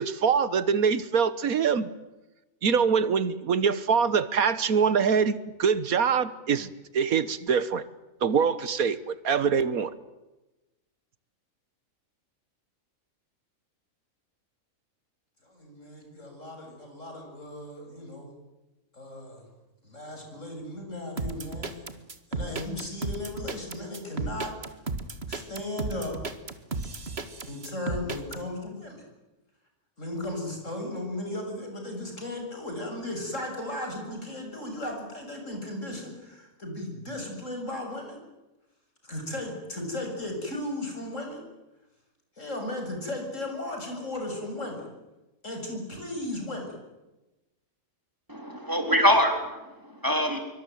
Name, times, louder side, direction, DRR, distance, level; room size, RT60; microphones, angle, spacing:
voice 1, 0.0-1.9 2.6-7.8 8.2-9.9, right 6 dB, 75° right, 15 dB, 1.7 m, -24 dB
voice 2, 15.4-18.3 18.9-19.4 19.8-21.9 22.3-24.5 25.3-26.2 27.5-29.0 30.0-38.2 39.0-41.4 42.4-44.8 45.4-46.7, left 1 dB, 60° left, 3 dB, 7.9 m, -36 dB
sound 1, 21.2-28.4, right 3 dB, 45° right, 2.2 m, -34 dB
voice 3, 48.3-50.4, equal, 15° right, 4 dB, 4.1 m, -24 dB
25.0 x 24.5 x 9.4 m, 1.0 s
omnidirectional pair, 1.5 m